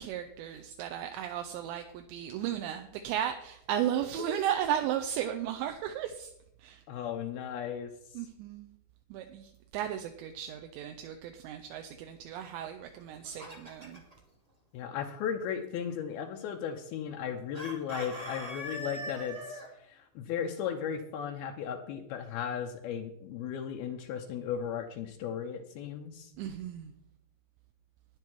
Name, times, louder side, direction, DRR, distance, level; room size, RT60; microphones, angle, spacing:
voice 1, 0.0-6.3 6.6-6.8 8.1-8.8 9.1-14.0 26.4-26.9, right 10 dB, 80° right, 6 dB, 2.8 m, -35 dB
voice 2, 6.9-8.2 14.7-26.3, left 8 dB, 85° left, 3 dB, 2.2 m, -36 dB
Chicken rooster, 12.9-14.1 17.5-19.7, equal, 45° right, 0.4 m, -41 dB
11.5 x 9.8 x 4.6 m, 0.76 s
omnidirectional pair, 5.4 m